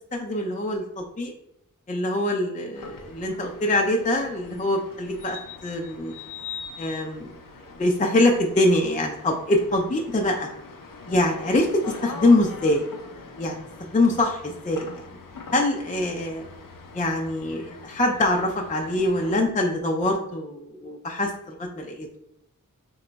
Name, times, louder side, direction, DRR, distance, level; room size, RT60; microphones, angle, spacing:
voice 1, 0.1-1.3 1.9-5.4 5.6-6.1 6.8-7.3 7.8-10.5 11.1-11.7 12.0-12.8 13.4-15.0 15.5-16.4 16.9-22.1, left 1 dB, 25° left, 2 dB, 0.4 m, -24 dB
sound 1, 2.7-19.4, left 5 dB, 75° left, 0.5 m, -43 dB
3.0 x 2.2 x 3.9 m, 0.80 s
wide cardioid pair, 50°, 33 cm